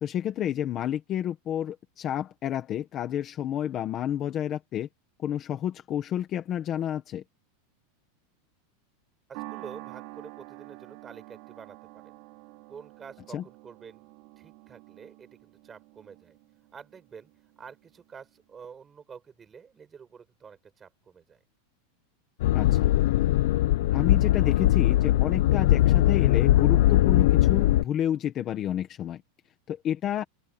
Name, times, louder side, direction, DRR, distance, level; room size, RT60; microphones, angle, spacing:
voice 1, 0.0-4.9 5.2-7.2 13.3-13.4 22.5-22.9 23.9-29.2 29.7-30.2, left 10 dB, 20° left, 1.4 m, -30 dB
voice 2, 9.3-12.2 12.7-14.1 14.4-16.4 16.7-17.3 17.6-21.4, right 6 dB, 15° right, 6.6 m, -48 dB
sound 1, 9.3-17.9, right 23 dB, 40° right, 3.0 m, -47 dB
sound 2, 22.4-27.8, left 15 dB, 55° left, 0.5 m, -21 dB
open air
supercardioid pair, 180°, 0 cm